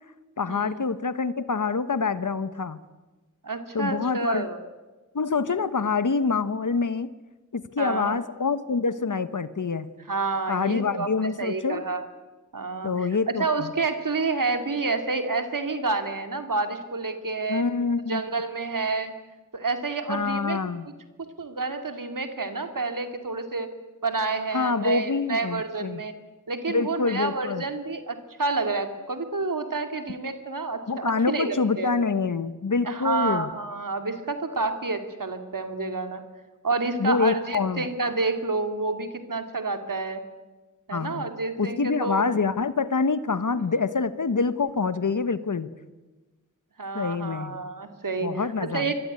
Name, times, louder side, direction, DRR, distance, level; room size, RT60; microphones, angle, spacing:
voice 1, 0.4-2.8 3.7-4.5 5.1-7.1 7.5-9.9 10.5-11.8 12.8-13.7 17.5-18.2 20.1-20.9 24.5-26.0 26.7-27.6 30.9-33.5 37.0-37.9 40.9-41.3 41.6-45.7 46.9-47.6 48.2-48.9, left 4 dB, 70° left, 13 dB, 1.1 m, -26 dB
voice 2, 3.4-4.6 7.8-8.1 10.1-12.1 12.5-12.9 13.4-17.6 18.1-19.1 19.5-20.6 21.4-23.7 24.0-26.1 26.5-31.9 32.8-36.2 36.6-40.2 40.9-42.2 46.8-48.3 48.6-48.9, right 3 dB, 85° right, 7 dB, 2.6 m, -29 dB
25.0 x 21.5 x 9.7 m, 1.2 s
wide cardioid pair, 65°, 32 cm